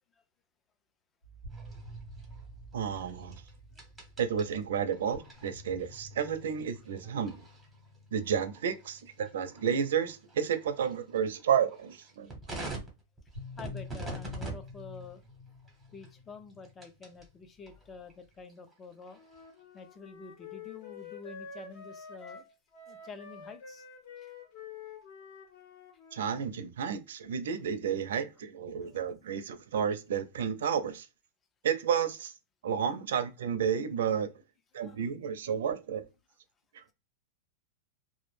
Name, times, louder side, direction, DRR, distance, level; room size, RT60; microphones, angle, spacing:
sound 1, 1.2-11.4 13.3-18.4, left 2 dB, 80° left, 1.2 m, -49 dB
sound 2, 1.5-17.3 17.7-19.8, right 2 dB, 5° right, 0.8 m, -47 dB
voice 1, 2.7-3.4 4.2-7.4 8.1-12.3 26.1-31.1 31.6-32.3 32.6-34.3 34.7-36.0 36.7-36.8, right 7 dB, 80° right, 0.4 m, -31 dB
voice 2, 13.6-15.2 15.9-19.2 19.7-22.5 22.9-23.9 24.2-24.3 28.8-29.0 34.7-35.1, left 5 dB, 15° left, 0.4 m, -48 dB
Wind instrument woodwind instrument, 19.1-26.4, left 5 dB, 45° left, 0.7 m, -48 dB
2.2 x 2.1 x 3.1 m
supercardioid pair, 165°, 0 cm